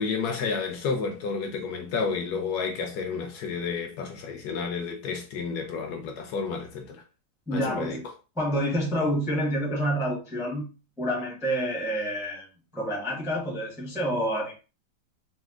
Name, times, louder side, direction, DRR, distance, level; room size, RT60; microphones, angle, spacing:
voice 1, 0.0-7.0 7.5-8.0, left 5 dB, 70° left, 1.1 m, -31 dB
voice 2, 7.5-8.0 8.4-10.7 11.0-12.5 12.7-14.6, equal, 5° right, 0.6 m, -28 dB
4.2 x 2.2 x 2.4 m
omnidirectional pair, 1.9 m